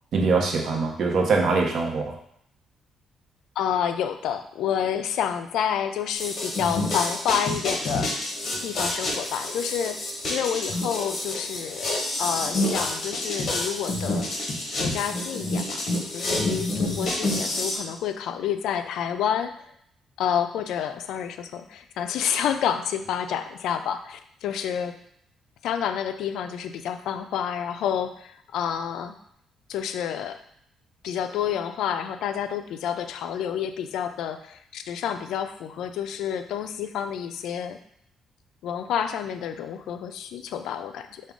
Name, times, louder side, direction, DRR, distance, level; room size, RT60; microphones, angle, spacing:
voice 1, 0.1-2.1, right 4 dB, 60° right, 1 dB, 0.8 m, -23 dB
voice 2, 3.6-8.3 8.6-11.9 12.2-14.3 14.8-15.8 16.1-19.6 20.2-25.0 25.6-29.2 29.7-30.4 31.0-37.8 38.6-41.2, left 9 dB, 80° left, 9 dB, 0.3 m, -29 dB
sound 1, 6.2-17.8, left 1 dB, 50° left, 1.1 m, -28 dB
4.8 x 2.2 x 3.6 m, 0.70 s
cardioid pair, 90°, 0 cm